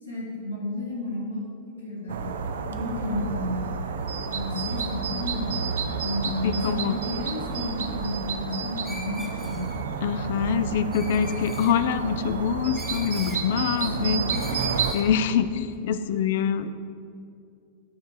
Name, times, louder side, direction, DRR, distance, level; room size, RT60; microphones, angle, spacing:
voice 1, 0.0-2.3 2.7-3.7 4.3-5.6 6.0-9.7 10.4-10.6 11.1-11.3 13.6-14.6, left 1 dB, 85° left, -6 dB, 1.5 m, -32 dB
sound 1, 2.1-14.9, right 5 dB, 65° right, 0.4 m, -31 dB
voice 2, 6.4-6.9 10.0-14.2 14.9-16.7, left 7 dB, 55° left, 11 dB, 0.3 m, -25 dB
Screech, 8.8-9.9 10.9-11.8 12.7-13.4 14.3-15.1, left 1 dB, 5° left, 0.8 m, -42 dB
9.1 x 3.3 x 4.9 m, 2.4 s
figure-of-eight pair, 90°, 0 cm